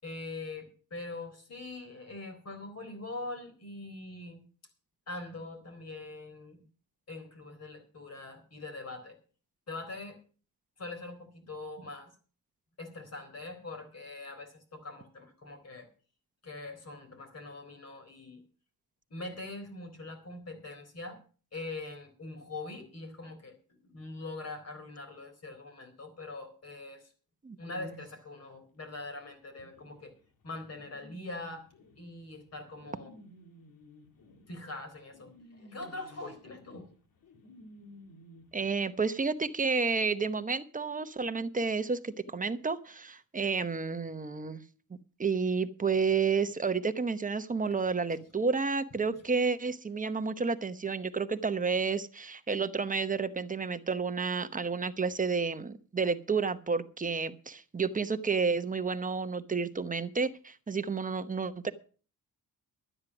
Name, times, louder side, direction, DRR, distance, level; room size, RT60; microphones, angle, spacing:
voice 1, 0.0-4.4 5.1-6.6 7.1-9.2 9.7-10.2 10.8-12.1 12.8-15.9 16.4-18.4 19.1-21.2 21.5-27.1 27.6-30.1 30.4-31.7 32.0-33.1 34.5-36.9 48.1-48.2, left 2 dB, 45° left, 6 dB, 4.1 m, -43 dB
voice 2, 27.4-27.9 38.5-44.6 45.2-61.7, right 5 dB, 20° right, 10 dB, 0.9 m, -31 dB
sound 1, 29.6-38.7, left 1 dB, 65° left, 2.3 m, -55 dB
12.0 x 9.6 x 6.1 m, 0.40 s
cardioid pair, 115°, 36 cm